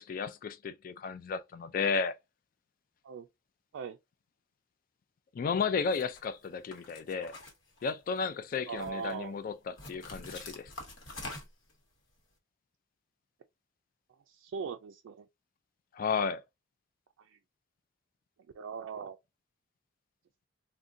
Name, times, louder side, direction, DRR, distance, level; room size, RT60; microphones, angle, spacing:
voice 1, 0.0-2.1 5.3-7.3 7.8-10.7 15.9-16.4, left 5 dB, 45° left, 0.3 m, -33 dB
sound 1, 5.8-6.2 6.7-8.2 8.5-9.1 9.8-11.7, left 2 dB, 80° left, 1.0 m, -45 dB
voice 2, 8.7-9.4 14.3-15.3 17.2-17.4 18.5-19.2, right 6 dB, 90° right, 0.3 m, -40 dB
3.7 x 2.2 x 2.5 m
head